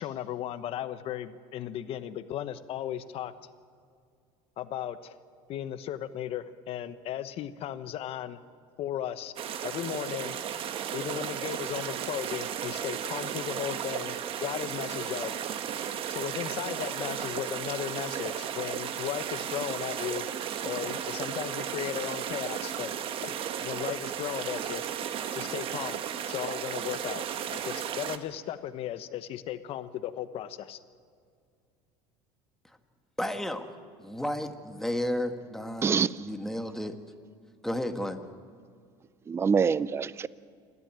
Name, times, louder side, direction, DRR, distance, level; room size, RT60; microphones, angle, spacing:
voice 1, 0.0-3.3 4.6-5.2 5.5-8.4 8.8-9.3 9.6-10.4 10.9-15.3 16.1-20.2 20.6-22.9 23.2-24.8 25.3-26.0 26.3-27.2 27.5-30.8, left 11 dB, 50° left, 12 dB, 1.1 m, -36 dB
sound 1, 9.4-28.2, right 9 dB, 45° right, 1.3 m, -34 dB
voice 2, 33.2-33.7 34.0-37.0 37.6-38.3, left 1 dB, 5° left, 6 dB, 1.6 m, -33 dB
voice 3, 35.8-36.3 39.3-40.3, right 6 dB, 20° right, 18 dB, 0.5 m, -26 dB
29.0 x 12.5 x 9.0 m, 2.3 s
supercardioid pair, 120°, 12 cm